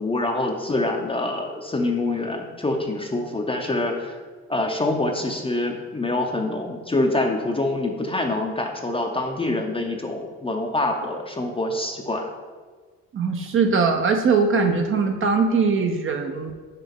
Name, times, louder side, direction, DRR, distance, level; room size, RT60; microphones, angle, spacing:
voice 1, 0.0-4.2 4.5-12.3, left 2 dB, 20° left, 2 dB, 0.6 m, -25 dB
voice 2, 13.1-16.5, right 4 dB, 45° right, 4 dB, 0.6 m, -21 dB
5.6 x 4.9 x 3.6 m, 1.4 s
cardioid pair, 90°, 30 cm